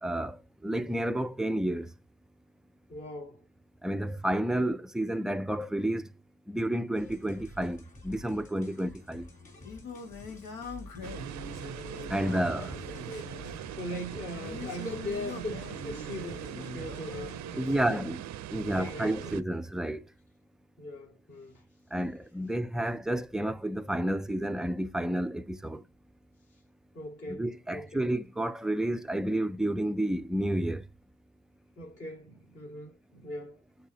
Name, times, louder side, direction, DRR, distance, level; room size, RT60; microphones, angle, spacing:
voice 1, 0.0-1.9 3.8-6.1 6.5-9.3 12.1-12.8 17.5-18.2 18.5-20.1 21.9-25.8 27.3-30.9, right 1 dB, ahead, 0.4 m, -30 dB
voice 2, 2.9-3.4 9.6-9.7 12.3-12.8 13.1-18.0 18.6-19.3 20.8-21.6 26.9-28.0 31.8-33.6, left 1 dB, 50° left, 3.6 m, -40 dB
sound 1, 6.9-17.4, left 1 dB, 25° left, 3.0 m, -50 dB
Singing, 9.1-18.2, left 3 dB, 80° left, 2.0 m, -44 dB
sound 2, 11.0-19.4, right 12 dB, 65° right, 0.6 m, -41 dB
12.0 x 4.0 x 2.8 m
cardioid pair, 90°, 30 cm